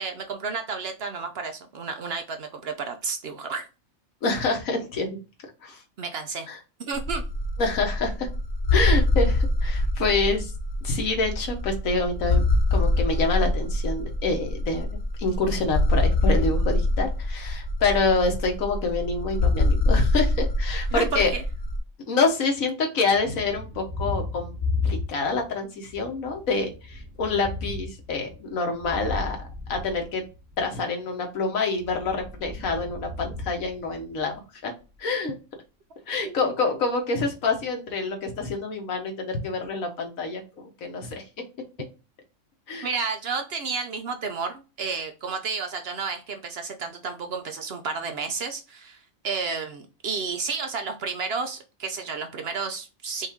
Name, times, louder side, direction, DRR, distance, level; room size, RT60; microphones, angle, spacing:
voice 1, 0.0-3.7 6.0-6.5 6.8-7.2 20.9-21.4 36.2-36.5 42.8-49.0 49.2-53.3, right 5 dB, 60° right, 6 dB, 0.7 m, -31 dB
voice 2, 4.2-5.1 5.6-5.8 6.5-6.6 7.6-8.3 8.7-10.5 10.8-12.4 12.7-14.9 15.2-21.3 22.1-24.5 24.8-29.4 29.7-30.3 30.6-34.4 34.6-34.7 35.0-35.3 36.1-41.2 42.7-42.9, left 3 dB, 85° left, 3 dB, 1.5 m, -27 dB
sound 1, 6.9-21.8, left 2 dB, 45° left, 1.0 m, -25 dB
Thunder, 23.1-25.5 25.8-30.7 31.7-34.4, left 3 dB, 10° right, 0.7 m, -34 dB
5.4 x 2.6 x 3.5 m, 0.30 s
omnidirectional pair, 1.4 m